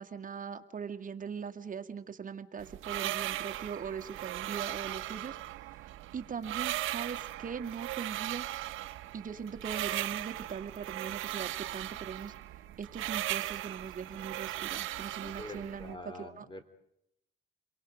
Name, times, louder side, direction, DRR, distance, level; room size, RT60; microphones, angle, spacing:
voice 1, 0.0-5.4 6.1-8.4 9.1-12.3 12.8-16.5, right 6 dB, 40° right, 5 dB, 1.9 m, -40 dB
sound 1, 2.6-16.0, right 14 dB, 85° right, 0.9 m, -38 dB
voice 2, 15.2-16.6, left 2 dB, 25° left, 10 dB, 3.3 m, -45 dB
28.5 x 23.0 x 5.2 m, 0.80 s
cardioid pair, 90°, 20 cm